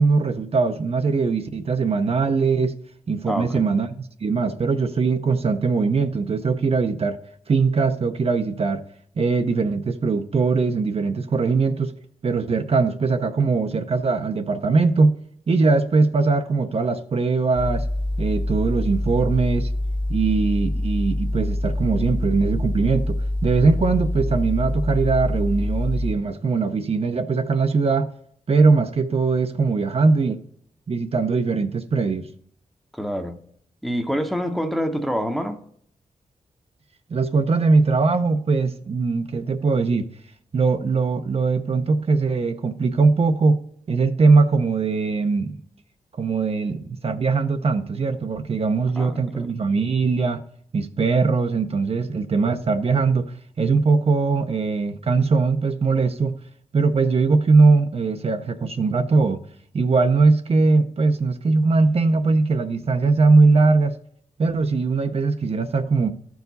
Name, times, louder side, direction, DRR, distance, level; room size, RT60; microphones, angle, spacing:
voice 1, 0.0-2.7 3.1-3.9 4.2-7.2 7.5-8.8 9.2-11.9 12.2-15.1 15.5-17.8 18.2-19.7 20.1-28.1 28.5-30.4 30.9-32.3 37.1-40.1 40.5-43.6 43.9-45.5 46.2-50.4 50.7-56.4 56.7-59.4 59.7-63.9 64.4-66.1, right 4 dB, 50° right, 0.6 m, -20 dB
voice 2, 3.3-3.6 32.9-33.4 33.8-35.6 49.0-49.5, equal, ahead, 0.8 m, -26 dB
sound 1, 17.5-26.1, left 1 dB, 35° left, 1.2 m, -25 dB
14.0 x 4.7 x 4.0 m
wide cardioid pair, 100°, 13 cm